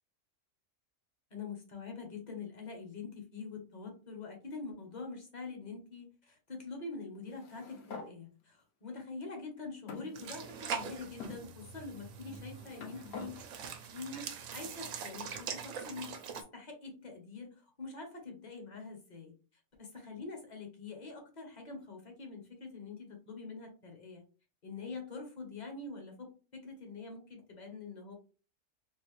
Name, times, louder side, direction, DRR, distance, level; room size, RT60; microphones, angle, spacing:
voice 1, 1.3-13.4 13.9-19.3 19.8-24.2 24.6-28.1, left 4 dB, 35° left, 2 dB, 1.0 m, -45 dB
sound 1, 7.3-8.1 8.9-9.0 9.9-10.7 11.2-11.4 12.3-13.3, left 4 dB, 60° left, 0.9 m, -46 dB
sound 2, 10.1-16.4, right 6 dB, 80° right, 1.0 m, -43 dB
3.7 x 2.4 x 3.1 m, 0.37 s
omnidirectional pair, 1.3 m